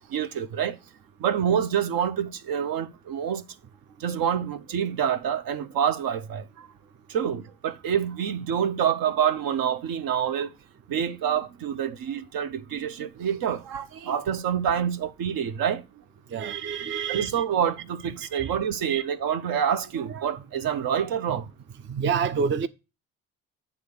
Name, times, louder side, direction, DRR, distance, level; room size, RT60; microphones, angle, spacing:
voice 1, 0.1-0.7 1.2-3.4 4.0-6.4 7.1-10.5 10.9-15.8 17.1-21.4, right 8 dB, 60° right, 0.8 m, -27 dB
voice 2, 16.3-17.3 18.3-18.5 18.9-19.0 21.9-22.7, right 6 dB, 30° right, 0.5 m, -27 dB
8.0 x 3.7 x 6.6 m
hypercardioid pair, 55°, 40 cm